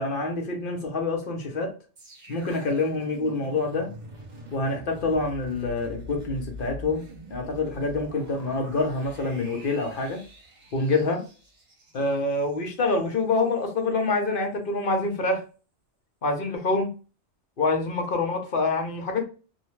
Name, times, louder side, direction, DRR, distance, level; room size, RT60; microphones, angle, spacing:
voice 1, 0.0-1.7 2.3-3.9 4.5-10.2 10.7-11.3 11.9-15.4 16.2-16.9 17.6-19.3, left 3 dB, 55° left, 0.8 m, -26 dB
sound 1, 2.0-13.1 13.5-13.6, left 1 dB, 40° right, 0.9 m, -44 dB
2.7 x 2.1 x 3.0 m
omnidirectional pair, 1.2 m